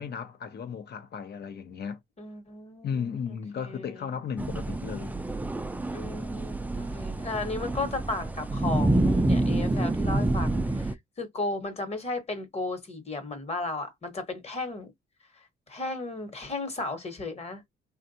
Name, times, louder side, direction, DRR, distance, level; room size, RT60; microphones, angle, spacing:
voice 1, 0.0-2.0 2.8-5.2, left 7 dB, 55° left, 0.8 m, -35 dB
voice 2, 2.2-3.9 5.9-14.9 15.7-17.6, left 2 dB, 30° left, 1.3 m, -35 dB
sound 1, 4.4-10.9, right 2 dB, 10° right, 0.4 m, -27 dB
3.4 x 2.5 x 2.7 m
cardioid pair, 90°, 20 cm